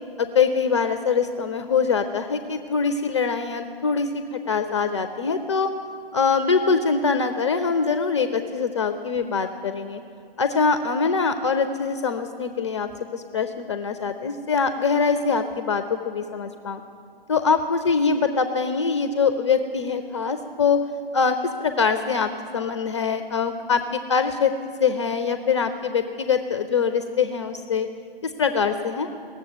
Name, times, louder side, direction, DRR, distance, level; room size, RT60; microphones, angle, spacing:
voice 1, 0.2-5.7 6.1-10.0 10.4-16.8 17.3-20.8 21.1-24.5 24.8-27.9 28.2-29.2, left 5 dB, 30° left, 9 dB, 0.4 m, -23 dB
18.0 x 7.2 x 7.9 m, 2.4 s
figure-of-eight pair, 130°, 30 cm